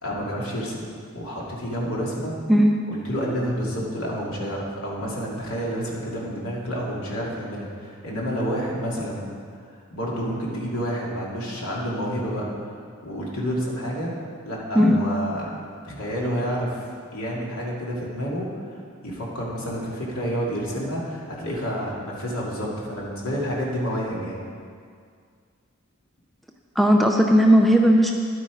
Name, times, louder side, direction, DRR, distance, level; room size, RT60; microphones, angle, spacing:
voice 1, 0.0-0.9 1.1-2.4 2.9-9.3 9.9-12.7 13.0-14.1 14.4-15.5 15.8-16.8 17.1-24.4, equal, 75° left, -4 dB, 2.6 m, -29 dB
voice 2, 26.8-28.1, equal, ahead, 1 dB, 0.5 m, -16 dB
11.5 x 8.7 x 5.0 m, 2.1 s
head